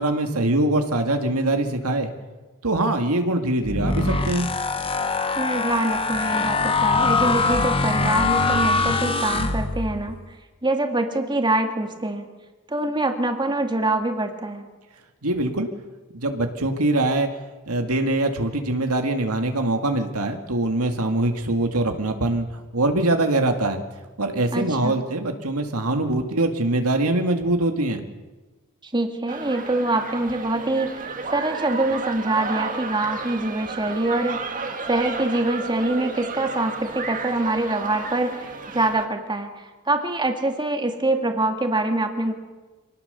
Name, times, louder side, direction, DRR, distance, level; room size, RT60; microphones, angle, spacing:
voice 1, 0.0-2.1 2.6-4.5 15.2-15.7 16.1-17.3 17.7-22.5 22.7-23.8 24.2-28.1, right 2 dB, 80° right, 5 dB, 2.2 m, -23 dB
sound 1, 3.6-10.1, left 3 dB, 25° left, 1.5 m, -23 dB
voice 2, 5.4-10.2 10.6-12.3 12.7-14.7 24.5-25.0 28.8-31.0 31.3-34.5 34.9-42.3, right 2 dB, 20° right, 5 dB, 2.1 m, -24 dB
sound 2, 29.3-39.1, right 4 dB, 40° right, 1.9 m, -32 dB
25.0 x 19.0 x 7.0 m, 1.2 s
head